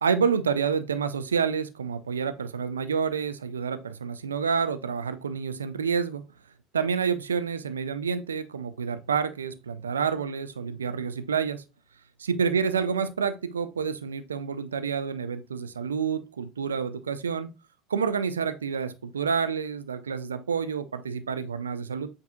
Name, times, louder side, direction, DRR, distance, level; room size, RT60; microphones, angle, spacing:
voice 1, 0.0-6.2 6.7-11.6 12.2-17.5 17.9-22.1, right 6 dB, 90° right, 0.4 m, -28 dB
7.6 x 2.7 x 2.2 m
hypercardioid pair, 70°, 0 cm